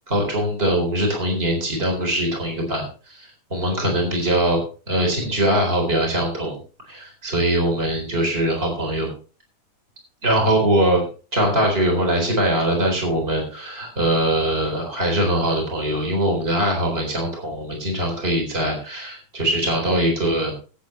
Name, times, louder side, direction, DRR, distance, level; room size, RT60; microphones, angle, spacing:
voice 1, 0.1-4.6 4.9-6.6 6.9-9.1 10.2-11.1 11.3-20.5, right 1 dB, 20° right, 1 dB, 4.0 m, -22 dB
18.5 x 8.6 x 3.2 m, 0.36 s
omnidirectional pair, 3.5 m